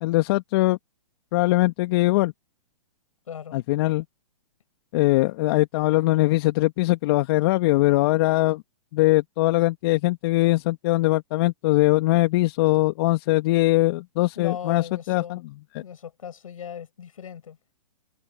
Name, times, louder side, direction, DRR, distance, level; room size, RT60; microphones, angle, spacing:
voice 1, 0.0-0.8 1.3-2.3 3.5-4.0 4.9-8.6 8.9-15.4, left 19 dB, 40° left, 1.9 m, -21 dB
voice 2, 3.3-3.6 14.4-15.4 15.8-17.6, left 8 dB, 70° left, 7.4 m, -38 dB
hypercardioid pair, 125°, 18 cm